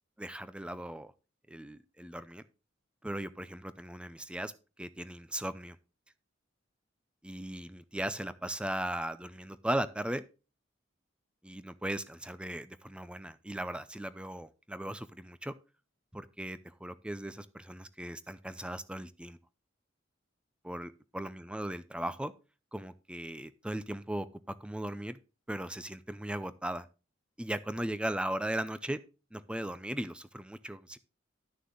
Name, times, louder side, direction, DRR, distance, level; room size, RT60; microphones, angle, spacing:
voice 1, 0.2-1.1 1.5-2.4 3.0-4.5 4.8-5.8 7.2-10.2 11.4-15.5 16.1-19.4 20.6-22.3 22.7-25.2 25.5-26.9 27.4-29.0 29.3-31.0, right 1 dB, 5° right, 0.6 m, -37 dB
11.5 x 6.6 x 3.8 m
head